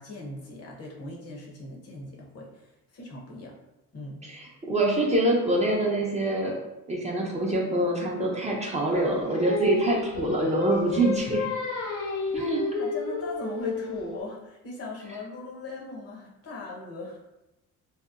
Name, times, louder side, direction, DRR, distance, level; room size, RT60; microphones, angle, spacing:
voice 1, 0.0-3.6 3.9-4.2 12.8-17.2, left 2 dB, 55° left, -2 dB, 0.7 m, -39 dB
voice 2, 4.2-6.6 6.9-11.4 12.3-12.6, right 1 dB, 25° right, -2 dB, 0.4 m, -25 dB
Singing, 8.9-14.1, left 4 dB, 85° left, 0.5 m, -31 dB
2.8 x 2.1 x 2.3 m, 0.95 s
cardioid pair, 90°, 30 cm